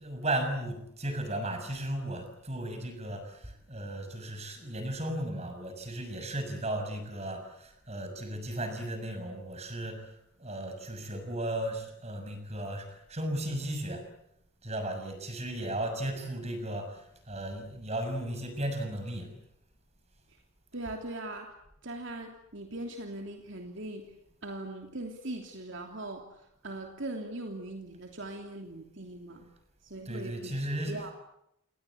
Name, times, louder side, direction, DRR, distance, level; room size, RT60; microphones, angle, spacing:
voice 1, 0.0-10.1 10.4-14.0 14.6-19.3 30.0-30.9, right 1 dB, 30° right, 6 dB, 6.5 m, -35 dB
voice 2, 20.7-21.5 21.8-24.0 24.4-29.5 29.8-30.5 30.8-31.1, right 2 dB, 60° right, 2 dB, 3.1 m, -40 dB
28.5 x 21.5 x 8.5 m, 0.79 s
head